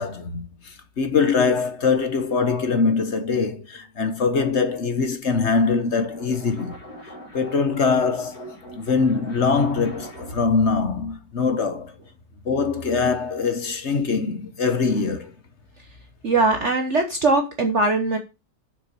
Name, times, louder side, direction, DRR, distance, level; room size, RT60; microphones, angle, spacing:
voice 1, 0.0-6.8 7.3-8.4 8.7-11.9 12.4-15.3, left 5 dB, 45° left, 1.3 m, -23 dB
sound 1, 5.8-10.5, equal, 60° left, 3.0 m, -41 dB
voice 2, 16.2-18.2, right 3 dB, 45° right, 1.2 m, -20 dB
7.1 x 6.1 x 6.9 m
omnidirectional pair, 1.9 m